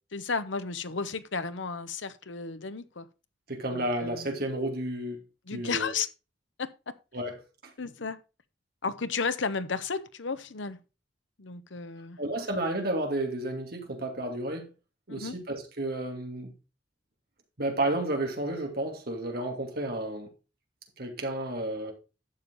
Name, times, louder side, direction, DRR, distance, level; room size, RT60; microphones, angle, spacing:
voice 1, 0.1-3.1 3.7-4.3 5.5-6.1 6.6-6.7 7.8-8.2 8.8-10.8 11.4-12.2 15.1-15.4, left 5 dB, 80° left, 0.9 m, -33 dB
voice 2, 3.5-5.2 5.5-5.9 7.1-7.4 12.2-14.7 15.1-16.5 17.6-20.3 21.0-21.9, right 1 dB, 55° right, 2.8 m, -31 dB
11.5 x 7.1 x 4.1 m
head